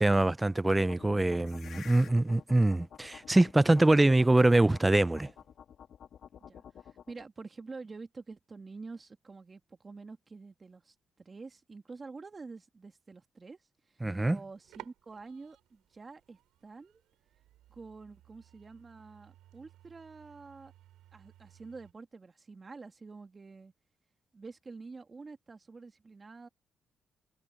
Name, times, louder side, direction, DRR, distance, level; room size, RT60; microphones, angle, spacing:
voice 1, 0.0-5.3 14.0-14.4, right 2 dB, 15° right, 0.4 m, -24 dB
sound 1, 0.7-7.2, left 8 dB, 65° left, 1.9 m, -50 dB
voice 2, 6.4-13.6 13.9-17.0 17.7-20.7 21.1-23.7 24.3-26.5, right 4 dB, 30° right, 2.1 m, -48 dB
sound 2, 14.3-21.9, right 14 dB, 90° right, 6.2 m, -57 dB
cardioid pair, 90°, 0 cm